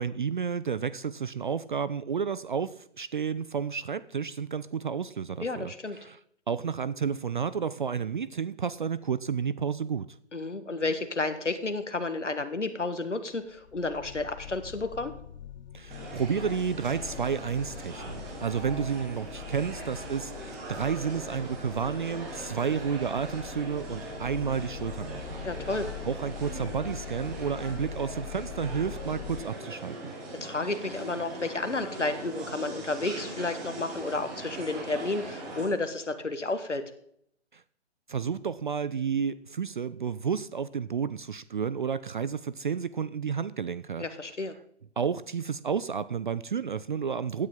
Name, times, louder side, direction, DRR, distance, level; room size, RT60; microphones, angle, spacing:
voice 1, 0.0-5.7 6.0-6.2 6.5-10.2 15.7-25.5 26.0-30.1 37.5-37.6 38.1-44.0 45.0-47.5, right 6 dB, 45° right, 18 dB, 0.4 m, -31 dB
voice 2, 5.4-6.0 10.3-15.1 25.4-25.9 30.4-36.8 44.0-44.5, left 3 dB, 80° left, 9 dB, 1.5 m, -31 dB
sound 1, 13.6-29.4, left 11 dB, 40° left, 0.6 m, -43 dB
sound 2, 15.9-35.7, right 2 dB, 25° right, 4.7 m, -41 dB
16.5 x 9.8 x 3.7 m, 0.69 s
figure-of-eight pair, 130°, 35 cm